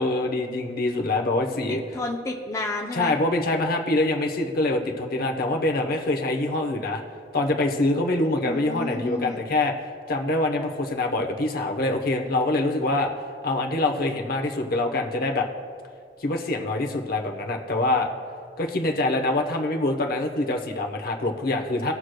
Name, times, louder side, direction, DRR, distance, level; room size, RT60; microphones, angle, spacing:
voice 1, 0.0-1.8 2.9-7.0 7.3-13.1 13.4-15.5 16.2-18.1 18.6-21.9, left 2 dB, 55° left, 3 dB, 0.8 m, -25 dB
voice 2, 1.7-3.1 8.4-9.4, left 2 dB, 15° left, 0 dB, 0.5 m, -31 dB
19.0 x 6.3 x 2.2 m, 2.2 s
head